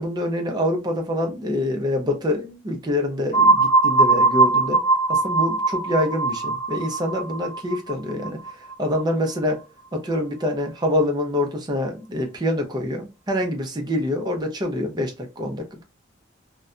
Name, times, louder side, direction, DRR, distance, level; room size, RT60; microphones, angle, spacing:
voice 1, 0.0-4.8 5.1-8.4 8.8-9.6 9.9-15.8, left 1 dB, 20° right, 0.4 m, -25 dB
sound 1, 3.3-9.0, right 3 dB, 35° left, 0.7 m, -20 dB
2.6 x 2.1 x 2.3 m
head